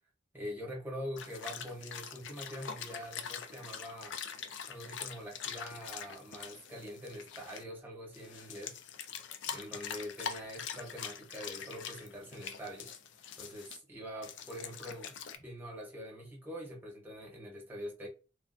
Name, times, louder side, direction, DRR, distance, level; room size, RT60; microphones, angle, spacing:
voice 1, 0.3-4.2 4.7-8.8 9.5-13.0 13.4-18.1, equal, 10° right, 0.9 m, -44 dB
sound 1, 1.2-7.6 8.1-13.8 14.2-15.4, left 7 dB, 75° left, 0.4 m, -44 dB
3.4 x 2.3 x 2.5 m
head